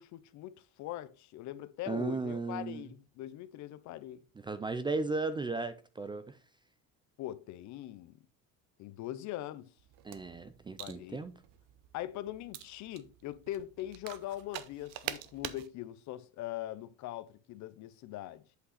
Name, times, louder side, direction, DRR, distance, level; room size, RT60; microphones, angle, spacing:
voice 1, 0.0-4.2 7.2-8.2 8.8-9.7 10.8-11.2 11.9-18.4, left 13 dB, 55° left, 0.7 m, -42 dB
voice 2, 1.9-2.8 4.4-6.4 10.0-11.3, right 3 dB, 15° right, 0.4 m, -35 dB
sound 1, 9.8-15.7, right 13 dB, 70° right, 0.8 m, -46 dB
8.0 x 5.5 x 4.1 m
cardioid pair, 140°, 34 cm